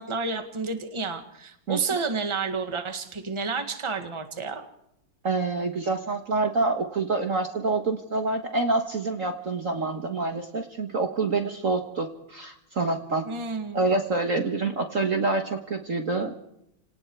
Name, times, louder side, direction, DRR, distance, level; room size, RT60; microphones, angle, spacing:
voice 1, 0.0-4.7 13.3-13.8, right 4 dB, 15° right, 6 dB, 1.7 m, -30 dB
voice 2, 5.2-13.3 13.7-16.4, right 3 dB, 40° right, 5 dB, 1.8 m, -27 dB
29.0 x 19.0 x 4.7 m, 0.78 s
omnidirectional pair, 2.2 m